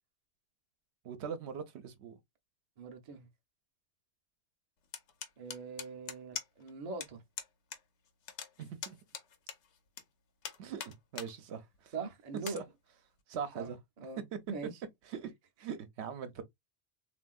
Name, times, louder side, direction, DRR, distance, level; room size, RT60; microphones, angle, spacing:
voice 1, 1.0-2.2 8.6-9.0 10.6-11.9 12.5-12.6 13.3-13.8 15.1-15.3 15.6-16.4, right 7 dB, 80° right, 0.9 m, -41 dB
voice 2, 2.8-3.3 5.4-7.2 11.9-12.6 13.5-13.7 14.0-14.8, right 4 dB, 45° right, 0.6 m, -42 dB
sound 1, 4.9-6.7 7.0-7.1 7.4-7.8 8.1-10.0 10.4-11.3 11.7-11.8 12.4-12.6, left 8 dB, 90° left, 1.0 m, -42 dB
3.4 x 2.5 x 2.2 m
omnidirectional pair, 1.1 m